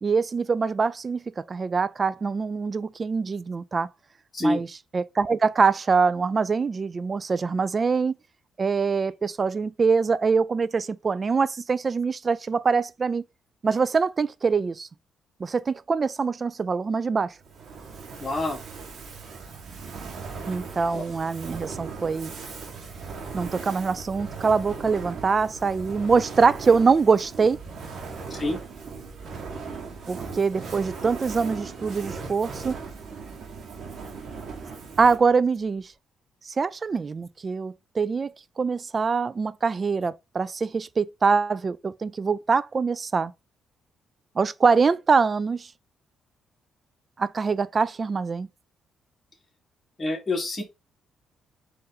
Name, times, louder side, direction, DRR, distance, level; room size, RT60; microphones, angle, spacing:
voice 1, 0.0-3.9 4.4-4.7 4.9-8.1 8.6-13.2 13.6-14.9 15.4-17.3 20.5-22.3 23.3-27.6 30.1-32.8 35.0-35.9 36.5-43.3 44.4-45.7 47.2-48.5, right 5 dB, 35° right, 0.3 m, -24 dB
Fire, 17.4-35.4, right 4 dB, 55° right, 1.1 m, -38 dB
voice 2, 18.2-18.6 20.9-21.0 28.3-28.6 50.0-50.6, left 1 dB, 30° left, 1.7 m, -26 dB
3.9 x 2.6 x 4.0 m
cardioid pair, 90°, 0 cm